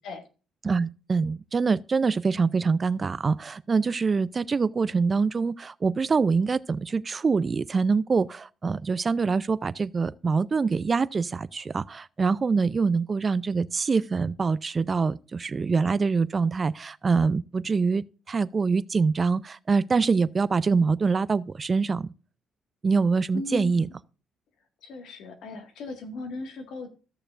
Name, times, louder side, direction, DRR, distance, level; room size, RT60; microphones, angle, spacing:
voice 1, 0.6-22.1 22.8-23.9, right 4 dB, 35° right, 0.4 m, -25 dB
voice 2, 23.3-23.9 24.8-26.9, left 3 dB, 85° left, 1.8 m, -37 dB
14.5 x 6.7 x 2.5 m
cardioid pair, 90°, 0 cm